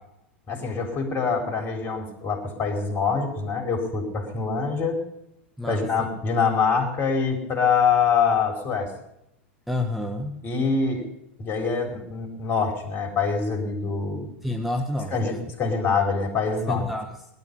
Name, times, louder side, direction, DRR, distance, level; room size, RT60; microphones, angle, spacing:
voice 1, 0.5-5.0 5.7-8.9 10.4-11.0 11.4-14.3 15.1-16.8, left 5 dB, 35° left, 4 dB, 4.5 m, -25 dB
voice 2, 9.7-10.4 14.4-15.5 16.7-17.2, left 2 dB, ahead, 4 dB, 1.5 m, -29 dB
19.0 x 12.5 x 5.5 m, 0.82 s
hypercardioid pair, 95°, 6 cm